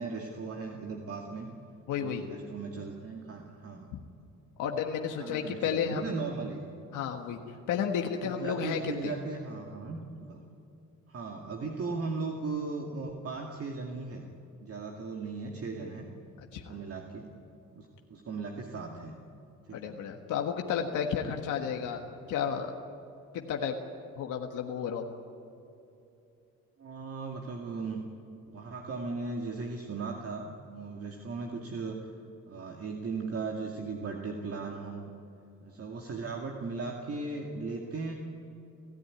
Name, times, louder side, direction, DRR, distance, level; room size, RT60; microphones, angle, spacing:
voice 1, 0.0-1.5 2.0-3.9 5.2-6.6 8.2-10.4 11.1-14.3 14.6-16.1 16.5-17.3 17.7-19.2 19.7-19.9 26.8-28.0 28.5-32.1 32.5-35.1 35.6-38.1, right 4 dB, 50° right, 0 dB, 2.3 m, -37 dB
voice 2, 1.9-2.2 3.9-4.0 4.6-6.1 6.9-7.4 7.7-9.1 16.5-16.7 19.7-22.7 23.3-23.8 24.2-25.0, left 7 dB, 90° left, 3 dB, 1.6 m, -32 dB
29.0 x 14.0 x 9.7 m, 2.8 s
cardioid pair, 90°, 30 cm